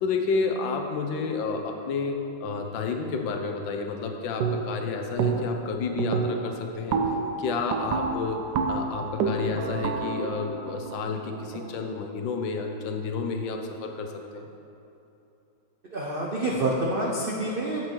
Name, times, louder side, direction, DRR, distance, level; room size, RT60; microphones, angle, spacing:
voice 1, 0.0-7.0 7.4-14.5, left 4 dB, 75° left, 3 dB, 1.5 m, -30 dB
sound 1, 4.4-4.9 5.2-5.7 6.0-11.8, right 5 dB, 70° right, 1.1 m, -29 dB
voice 2, 15.9-17.8, right 1 dB, 85° right, -3 dB, 0.4 m, -27 dB
7.8 x 7.6 x 4.5 m, 2.9 s
omnidirectional pair, 2.1 m